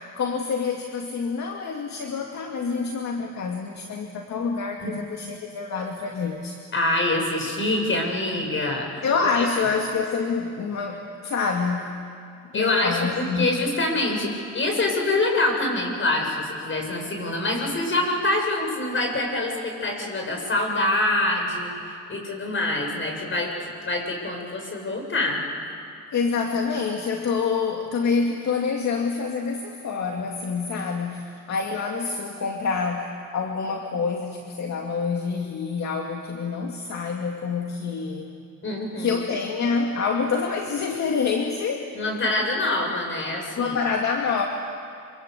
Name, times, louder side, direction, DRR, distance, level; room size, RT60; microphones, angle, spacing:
voice 1, 0.0-6.6 9.0-11.9 12.5-13.6 26.1-38.3 39.0-41.9 43.6-44.5, left 5 dB, 65° left, 2 dB, 2.3 m, -27 dB
voice 2, 6.7-8.9 9.2-9.4 12.5-25.4 38.6-39.2 41.9-43.8, left 2 dB, 40° left, 2 dB, 7.5 m, -25 dB
26.5 x 26.0 x 8.3 m, 2.4 s
cardioid pair, 90°, 30 cm